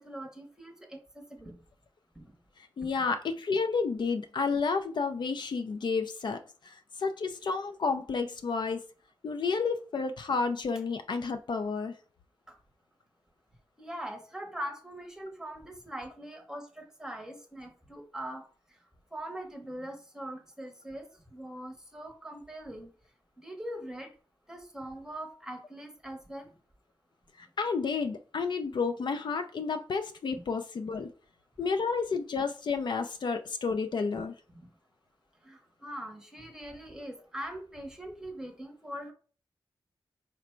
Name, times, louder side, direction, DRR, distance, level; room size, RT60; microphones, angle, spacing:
voice 1, 0.0-1.6 2.2-2.3 13.8-18.4 19.1-21.0 21.3-22.9 23.4-24.1 24.5-26.5 30.3-30.4 34.6-34.7 35.4-39.1, right 1 dB, 5° right, 3 dB, 0.8 m, -42 dB
voice 2, 2.8-8.8 9.2-11.9 27.4-31.1 31.6-34.3, left 4 dB, 65° left, 8 dB, 0.4 m, -31 dB
5.0 x 2.2 x 4.3 m, 0.39 s
wide cardioid pair, 165°, 9 cm